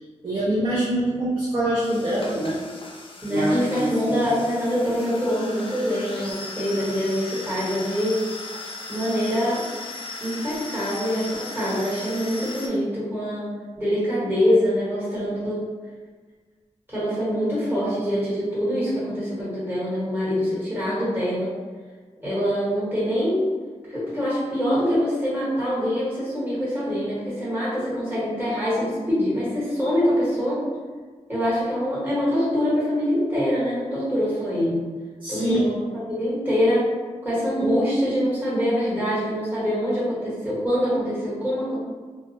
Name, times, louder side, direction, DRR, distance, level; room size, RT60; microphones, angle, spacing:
voice 1, 0.2-2.6 3.3-4.3 35.2-35.7, right 1 dB, 45° right, -8 dB, 0.5 m, -24 dB
sound 1, 1.8-12.7, left 3 dB, 50° left, 0.4 m, -37 dB
voice 2, 3.2-8.2 8.9-9.6 10.2-13.5 13.8-15.7 16.9-21.5 22.2-23.6 23.9-30.7 31.3-34.8 35.3-35.7 36.1-36.9 37.2-41.8, equal, 15° right, -9 dB, 1.2 m, -24 dB
2.3 x 2.0 x 2.6 m, 1.4 s
wide cardioid pair, 80°, 12 cm